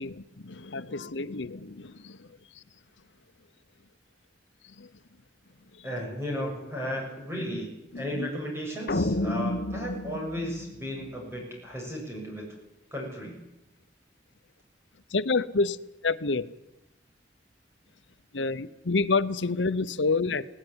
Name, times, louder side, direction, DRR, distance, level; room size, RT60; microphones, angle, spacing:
voice 1, 0.0-2.3 4.8-4.9 7.9-8.3 15.1-15.8 16.0-16.5 18.3-20.4, left 3 dB, 85° left, 0.9 m, -28 dB
voice 2, 5.8-7.7 7.9-12.5 12.9-13.3, equal, 15° right, 7.2 m, -34 dB
sound 1, 8.9-11.3, left 1 dB, 60° left, 1.0 m, -30 dB
20.5 x 18.0 x 9.9 m
head